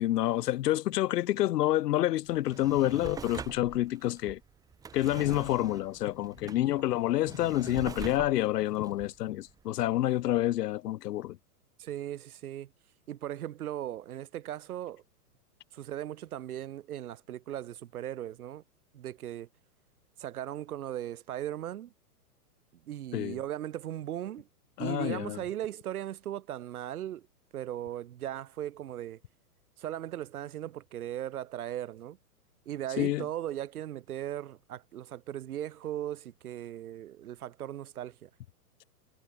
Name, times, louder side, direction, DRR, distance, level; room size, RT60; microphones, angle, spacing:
voice 1, 0.0-4.4 4.9-11.4 23.1-23.4 24.8-25.4 33.0-33.3, left 14 dB, 85° left, 0.6 m, -28 dB
Drawer open or close, 2.3-10.0 10.4-10.5, right 6 dB, 10° right, 0.8 m, -44 dB
voice 2, 11.8-12.7 13.1-15.0 15.7-18.6 18.9-19.5 20.2-21.9 22.9-24.5 24.8-27.3 27.5-29.2 29.8-32.2 32.7-38.3, right 12 dB, 65° right, 3.7 m, -38 dB
hypercardioid pair, 140°, 47 cm